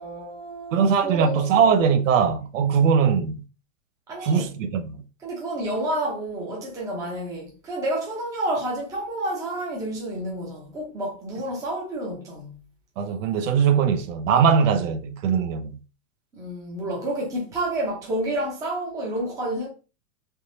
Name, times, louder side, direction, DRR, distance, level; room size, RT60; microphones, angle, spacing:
voice 1, 0.0-1.5 2.8-2.9 4.1-4.5 5.2-12.6 16.3-19.7, right 1 dB, 10° right, 0.6 m, -29 dB
voice 2, 0.7-3.4 4.2-5.0 13.0-15.8, right 6 dB, 70° right, 0.6 m, -21 dB
3.5 x 2.9 x 2.6 m
supercardioid pair, 165°, 40 cm